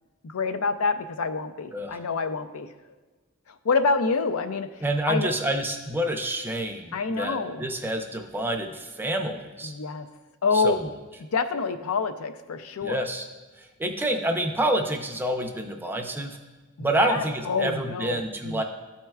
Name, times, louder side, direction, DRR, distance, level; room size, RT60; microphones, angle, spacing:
voice 1, 0.2-2.7 3.5-4.7 5.1-5.3 6.9-7.6 9.6-10.1 10.4-11.0 11.3-13.1 16.8-18.6, left 4 dB, 75° left, 9 dB, 0.5 m, -27 dB
voice 2, 4.8-9.7 10.5-10.8 12.8-13.2 13.6-16.4 16.8-18.6, right 1 dB, 10° right, 4 dB, 0.5 m, -28 dB
12.0 x 4.3 x 2.3 m, 1.3 s
head